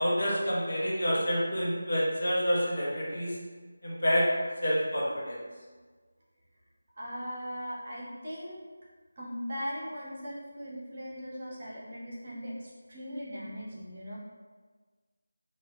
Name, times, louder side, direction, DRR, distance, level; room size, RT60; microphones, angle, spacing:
voice 1, 0.0-3.4 3.8-4.3 4.6-5.4, equal, 55° left, -5 dB, 1.0 m, -28 dB
voice 2, 6.9-8.6 9.2-14.2, equal, 40° right, -5 dB, 0.8 m, -39 dB
4.6 x 2.5 x 2.3 m, 1.4 s
figure-of-eight pair, 160°, 0 cm